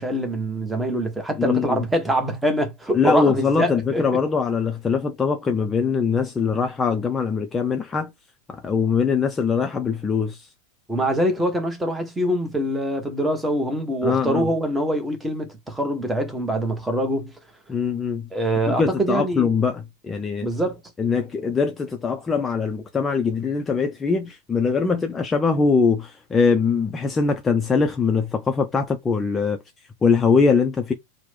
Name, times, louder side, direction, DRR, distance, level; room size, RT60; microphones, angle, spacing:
voice 1, 0.0-4.0 10.9-17.3 18.3-19.5 20.4-20.8, right 1 dB, 5° right, 0.9 m, -24 dB
voice 2, 1.4-1.8 2.9-8.1 8.5-10.5 14.0-14.5 17.7-18.3 18.7-20.5 21.0-29.6 30.0-30.9, left 5 dB, 15° left, 0.4 m, -22 dB
2.9 x 2.1 x 3.3 m
figure-of-eight pair, 90°, 0 cm